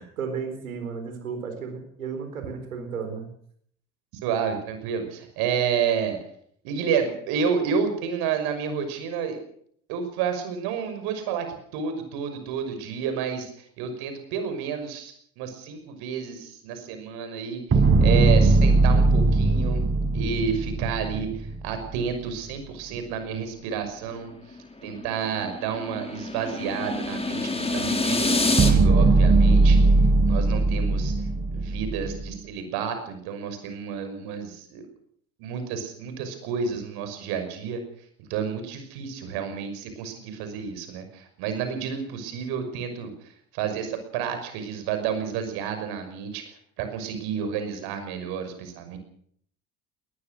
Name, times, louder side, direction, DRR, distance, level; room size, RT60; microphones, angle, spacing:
voice 1, 0.0-3.3, right 5 dB, 85° right, 7 dB, 4.5 m, -34 dB
voice 2, 4.2-6.2 6.6-9.4 9.9-11.5 11.7-13.5 13.8-19.8 20.1-24.3 24.8-29.8 30.3-31.1 31.5-34.8 35.4-37.8 38.2-43.1 43.5-46.4 46.8-49.0, right 7 dB, 65° right, 8 dB, 6.1 m, -30 dB
sound 1, 17.7-22.0 28.6-32.3, right 3 dB, 30° right, 5.3 m, -19 dB
sound 2, 24.4-28.7, left 2 dB, 15° left, 4.6 m, -27 dB
20.5 x 19.5 x 6.5 m, 0.64 s
hypercardioid pair, 60°, 41 cm